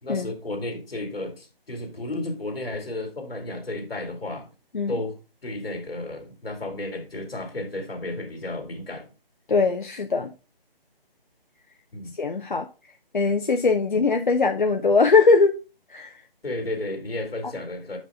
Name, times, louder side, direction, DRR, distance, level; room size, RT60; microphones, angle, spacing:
voice 1, 0.0-4.5 4.9-5.2 5.4-9.1 11.9-12.1 13.9-14.0 16.4-18.0, left 2 dB, 75° left, 2.5 m, -33 dB
voice 2, 9.5-10.3 12.2-12.7 13.1-15.6 15.9-16.1, left 4 dB, 55° left, 0.6 m, -20 dB
6.5 x 5.3 x 3.5 m
figure-of-eight pair, 175°, 30 cm